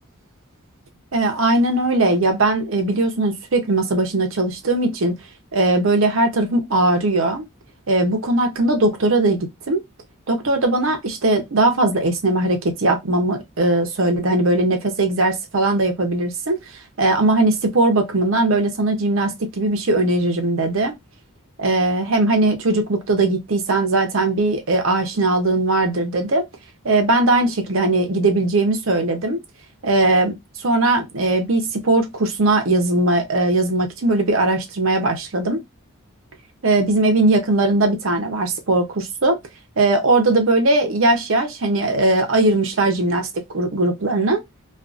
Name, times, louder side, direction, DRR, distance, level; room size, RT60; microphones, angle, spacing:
voice 1, 1.1-5.2 5.5-7.4 7.9-9.8 10.3-16.6 17.0-20.9 21.6-26.4 26.8-29.4 29.8-35.6 36.6-39.4 39.8-44.4, right 2 dB, 65° right, 0.7 m, -19 dB
2.5 x 2.4 x 2.4 m
head